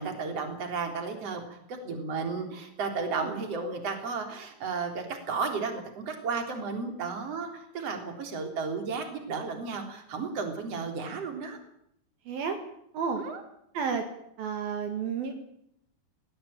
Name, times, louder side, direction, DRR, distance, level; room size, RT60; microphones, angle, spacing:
voice 1, 0.0-11.6 13.2-13.4, right 4 dB, 40° right, 5 dB, 4.4 m, -33 dB
voice 2, 12.3-12.6 12.9-13.2 13.7-14.0 14.4-15.4, right 6 dB, 70° right, 5 dB, 3.8 m, -31 dB
19.5 x 19.0 x 8.9 m, 0.73 s
omnidirectional pair, 4.5 m